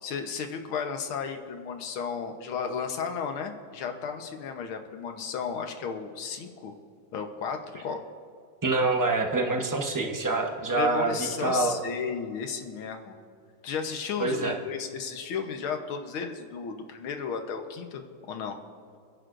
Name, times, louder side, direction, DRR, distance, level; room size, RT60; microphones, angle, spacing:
voice 1, 0.0-6.7 7.1-8.0 10.8-13.2 13.6-18.6, left 6 dB, 85° left, 5 dB, 1.9 m, -34 dB
voice 2, 8.6-11.1 11.4-11.7 14.2-14.6, right 3 dB, 20° right, 2 dB, 0.6 m, -26 dB
28.5 x 11.0 x 2.6 m, 2.3 s
omnidirectional pair, 2.2 m